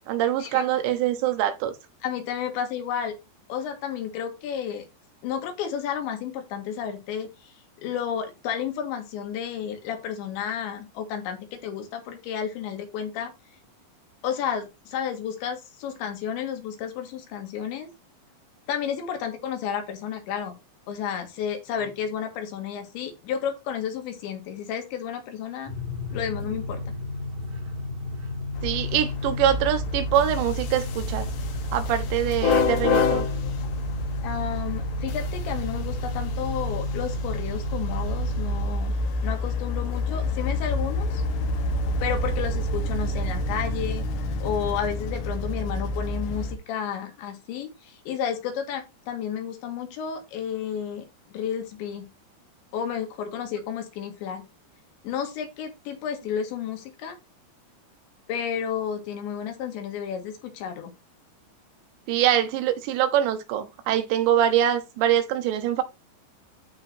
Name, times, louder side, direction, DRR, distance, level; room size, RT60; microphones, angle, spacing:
voice 1, 0.1-1.7 28.6-31.3 31.7-33.3 62.1-65.8, right 11 dB, 80° right, 3.4 m, -24 dB
voice 2, 2.0-3.2 3.5-4.8 5.2-7.5 7.8-13.3 14.2-17.9 18.7-20.6 20.9-25.7 26.1-26.8 34.2-39.0 39.2-41.2 42.0-44.0 44.4-51.0 51.3-52.1 52.7-54.4 55.0-57.2 58.3-60.9, left 8 dB, 85° left, 4.2 m, -32 dB
sound 1, 25.7-38.7, left 3 dB, 45° right, 2.4 m, -33 dB
sound 2, 28.5-46.5, left 2 dB, 70° left, 2.1 m, -28 dB
14.0 x 4.6 x 2.7 m
omnidirectional pair, 5.1 m